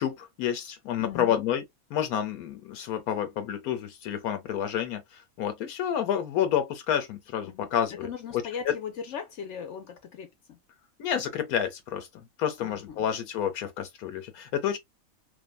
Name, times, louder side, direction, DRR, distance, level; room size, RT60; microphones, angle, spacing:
voice 1, 0.0-1.6 1.9-8.1 8.6-8.8 11.0-14.8, left 9 dB, 85° left, 1.1 m, -29 dB
voice 2, 1.0-1.4 7.4-10.6 12.6-13.1, left 7 dB, 65° left, 0.8 m, -39 dB
2.5 x 2.5 x 2.2 m
omnidirectional pair, 1.5 m